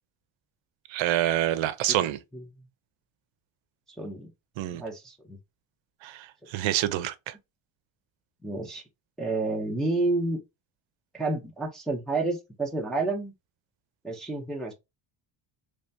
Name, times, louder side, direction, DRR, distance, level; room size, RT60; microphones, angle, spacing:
voice 1, 0.9-2.2 4.6-4.8 6.0-7.3, right 13 dB, 70° right, 0.6 m, -27 dB
voice 2, 1.9-2.4 4.0-4.3 4.7-5.4 8.4-8.8 9.2-10.4 11.1-13.3 14.0-14.7, right 2 dB, ahead, 0.5 m, -30 dB
3.3 x 3.3 x 2.6 m
cardioid pair, 175°, 48 cm